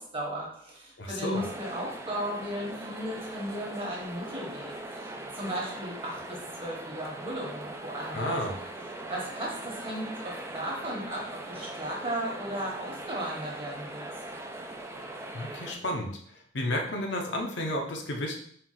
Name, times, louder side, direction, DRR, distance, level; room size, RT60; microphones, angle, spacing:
voice 1, 0.0-8.4 9.1-14.1, equal, 30° right, -3 dB, 1.2 m, -36 dB
voice 2, 1.0-1.4 8.1-8.5 15.3-16.1 16.5-18.4, left 1 dB, 65° left, 1 dB, 0.7 m, -31 dB
sound 1, 1.3-15.7, right 2 dB, 15° right, 0.3 m, -41 dB
4.4 x 2.4 x 3.9 m, 0.64 s
head